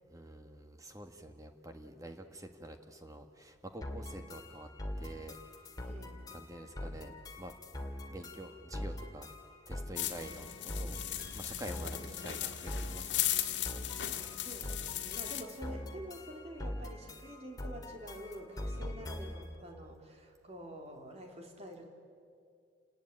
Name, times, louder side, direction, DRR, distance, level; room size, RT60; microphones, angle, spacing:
voice 1, 0.1-4.7 5.0-5.4 6.3-7.6 8.1-9.3 9.7-11.0 11.3-13.7 15.0-15.2, right 1 dB, 20° right, 6 dB, 1.6 m, -47 dB
sound 1, 3.8-19.5, left 1 dB, 20° left, 2.2 m, -43 dB
voice 2, 5.8-6.2 14.4-21.9, equal, 35° right, 2 dB, 3.4 m, -47 dB
sound 2, 10.0-15.4, left 12 dB, 75° left, 1.8 m, -37 dB
29.5 x 19.5 x 9.0 m, 2.3 s
head